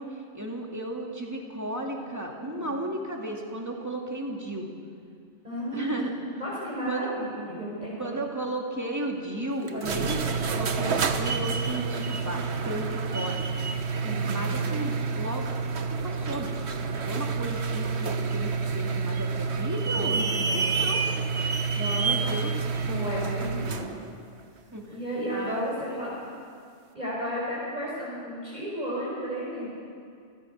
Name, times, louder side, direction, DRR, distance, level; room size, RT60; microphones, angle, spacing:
voice 1, 0.0-4.7 5.7-6.1 6.9-7.1 8.0-13.4 14.3-15.5 15.9-21.1 22.0-22.5 22.8-22.9 24.7-25.0 25.3-26.0, right 1 dB, 15° right, 0 dB, 2.6 m, -34 dB
voice 2, 2.4-2.8 5.4-6.0 6.4-8.2 9.7-9.9 10.1-10.4 14.0-14.4 20.0-20.9 21.7-22.2 22.8-24.0 24.9-26.1 26.9-29.7, equal, 35° right, -7 dB, 5.5 m, -34 dB
sound 1, 9.7-23.9, right 4 dB, 65° right, 1.4 m, -28 dB
29.5 x 14.5 x 6.7 m, 2.3 s
omnidirectional pair, 1.2 m